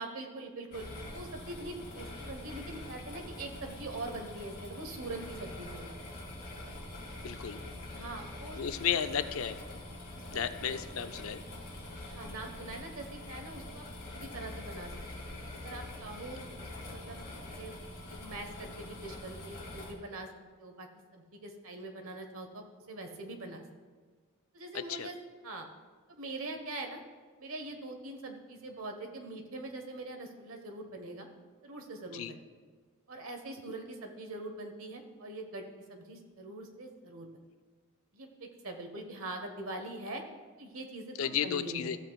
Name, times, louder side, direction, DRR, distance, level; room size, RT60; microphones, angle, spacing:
voice 1, 0.0-5.9 7.9-8.6 10.1-10.4 12.1-13.8 14.1-14.9 15.5-17.7 18.1-20.3 20.6-23.6 24.5-25.2 25.4-25.7 26.1-27.0 27.4-31.3 31.6-32.4 33.1-37.3 38.1-40.2 40.6-41.9, right 2 dB, 70° right, 4 dB, 1.2 m, -43 dB
sound 1, 0.7-19.9, left 1 dB, 40° left, 2.6 m, -44 dB
voice 2, 7.2-7.6 8.6-9.6 10.3-11.4 24.7-25.1 32.1-32.3 41.2-42.0, left 8 dB, 65° left, 11 dB, 0.5 m, -33 dB
14.5 x 7.7 x 2.3 m, 1.5 s
head